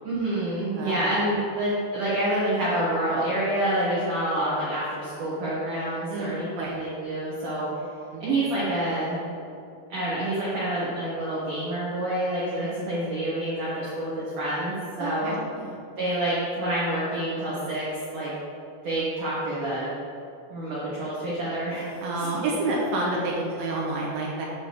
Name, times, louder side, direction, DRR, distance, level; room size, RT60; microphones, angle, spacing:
voice 1, 0.0-7.8 8.2-9.2 9.9-15.3 16.0-17.9 18.1-18.3 18.8-19.9 20.5-22.3, right 1 dB, 65° right, -9 dB, 2.0 m, -27 dB
voice 2, 6.1-6.7 8.1-8.2 15.0-15.8 22.0-24.5, right 2 dB, 85° right, -4 dB, 2.0 m, -29 dB
8.6 x 3.6 x 6.6 m, 2.6 s
omnidirectional pair, 5.7 m